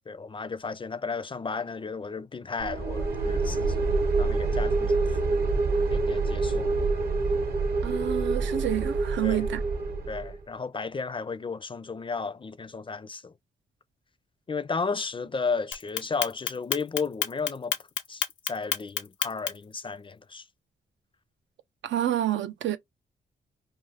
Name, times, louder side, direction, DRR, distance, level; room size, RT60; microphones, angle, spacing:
voice 1, 0.1-5.2 5.9-6.7 9.2-9.5 10.1-13.3 14.5-17.7 18.1-18.2 18.5-20.4, left 4 dB, 25° left, 0.4 m, -34 dB
sound 1, 2.6-10.4, right 3 dB, 55° right, 0.9 m, -26 dB
voice 2, 7.8-9.6 21.8-22.8, right 12 dB, 75° right, 0.4 m, -28 dB
Clock, 15.7-19.7, left 10 dB, 85° left, 0.4 m, -29 dB
2.4 x 2.3 x 3.2 m
supercardioid pair, 55°, 19 cm